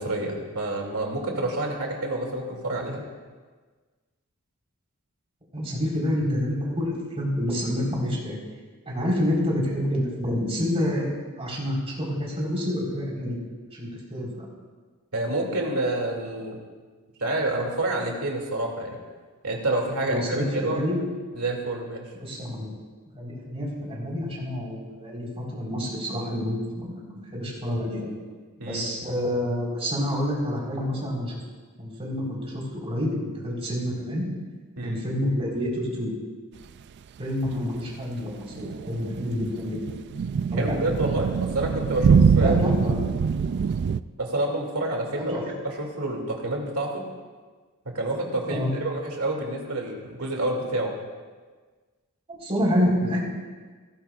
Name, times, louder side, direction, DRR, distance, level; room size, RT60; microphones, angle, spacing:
voice 1, 0.0-3.0 15.1-16.6 17.2-19.0 19.4-20.8 21.4-22.1 28.6-28.8 34.8-35.0 40.5-42.6 44.2-45.3 45.8-47.0 47.9-50.9, right 2 dB, 75° right, 0 dB, 2.6 m, -28 dB
voice 2, 5.5-8.4 8.9-11.1 11.4-13.4 13.7-14.4 20.0-21.0 22.2-22.7 23.2-28.2 28.6-31.3 31.8-33.1 33.4-34.2 34.8-36.1 37.2-40.0 40.5-40.8 42.3-43.0 45.1-45.4 48.5-48.7 52.3-53.2, equal, 25° right, -4 dB, 4.2 m, -28 dB
sound 1, 38.6-44.0, right 6 dB, 50° right, 0.3 m, -23 dB
17.0 x 15.0 x 2.4 m, 1.4 s
head